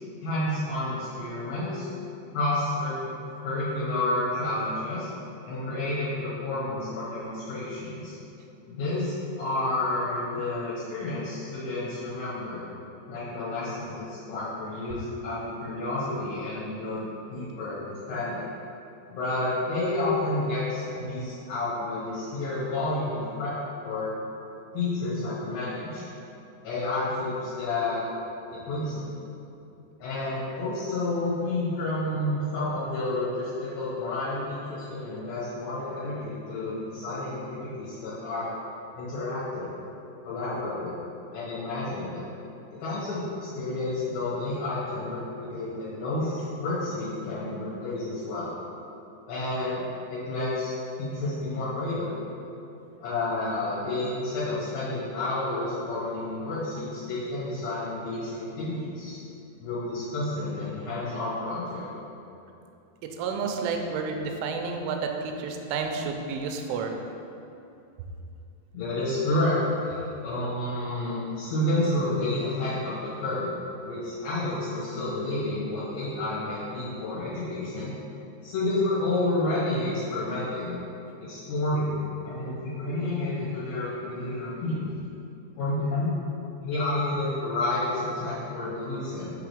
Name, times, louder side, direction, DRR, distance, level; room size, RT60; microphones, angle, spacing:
voice 1, 0.2-1.9 2.3-3.1 3.4-5.1 5.4-8.2 8.7-12.6 13.1-18.5 19.1-23.6 23.8-24.1 24.7-26.0 26.6-28.1 28.5-29.1 30.0-38.5 39.0-39.7 40.2-41.0 41.3-42.2 42.8-48.5 49.3-50.7 51.0-52.1 53.0-59.2 59.6-61.9 68.7-69.6 69.8-73.5 73.8-77.9 78.4-80.8 81.2-82.0 82.2-84.9 85.6-86.1 86.6-89.3, left 2 dB, 65° left, -11 dB, 3.5 m, -30 dB
voice 2, 63.2-67.0, right 5 dB, 85° right, 3 dB, 3.0 m, -30 dB
7.2 x 3.8 x 4.9 m, 2.8 s
omnidirectional pair, 5.6 m